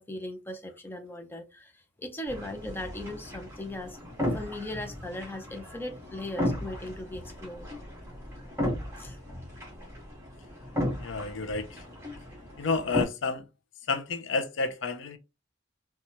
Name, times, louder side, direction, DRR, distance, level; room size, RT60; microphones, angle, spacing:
voice 1, 0.0-7.8 9.0-9.2, left 1 dB, 10° left, 0.6 m, -39 dB
sound 1, 2.3-13.0, left 1 dB, 15° right, 1.7 m, -35 dB
voice 2, 11.0-11.8 12.6-13.4 13.9-15.2, left 4 dB, 75° left, 0.6 m, -30 dB
4.1 x 2.3 x 2.9 m
head